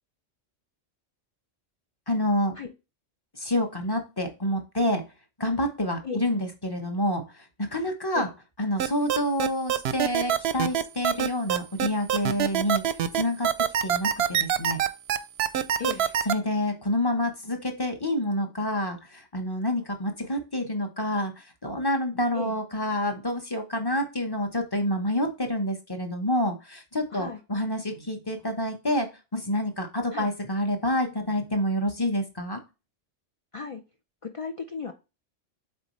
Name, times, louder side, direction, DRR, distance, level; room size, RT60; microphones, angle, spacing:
voice 1, 2.1-2.5 3.4-5.0 5.4-8.3 8.6-12.8 13.1-13.5 13.8-14.8 16.3-32.6, left 1 dB, 20° left, 0.9 m, -28 dB
sound 1, 8.8-16.3, right 10 dB, 65° right, 0.7 m, -24 dB
voice 2, 34.2-34.9, left 5 dB, 55° left, 0.3 m, -35 dB
8.0 x 3.8 x 3.1 m
omnidirectional pair, 1.3 m